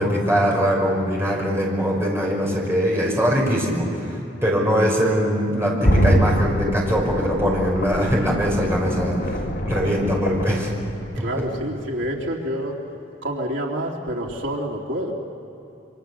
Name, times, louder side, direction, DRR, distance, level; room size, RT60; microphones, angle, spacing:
voice 1, 0.0-10.7 11.2-11.4, equal, 15° right, -3 dB, 5.4 m, -22 dB
sound 1, 5.8-11.6 12.0-12.1, equal, 60° left, 2.6 m, -24 dB
voice 2, 11.1-12.8 13.2-15.1, equal, 85° right, -1 dB, 3.1 m, -27 dB
27.0 x 25.0 x 6.9 m, 2.9 s
head